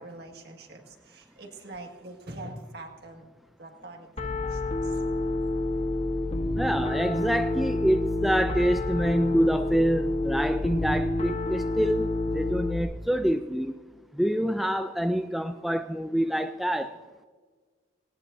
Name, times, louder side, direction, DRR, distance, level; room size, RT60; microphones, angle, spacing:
voice 1, 0.0-3.3 3.6-5.0, right 2 dB, 55° right, 3 dB, 1.8 m, -44 dB
Piano, 4.2-12.8, left 2 dB, 35° left, 1.1 m, -28 dB
voice 2, 6.6-13.7 14.2-17.0, equal, ahead, 8 dB, 0.3 m, -26 dB
18.0 x 18.0 x 2.6 m, 1.5 s
head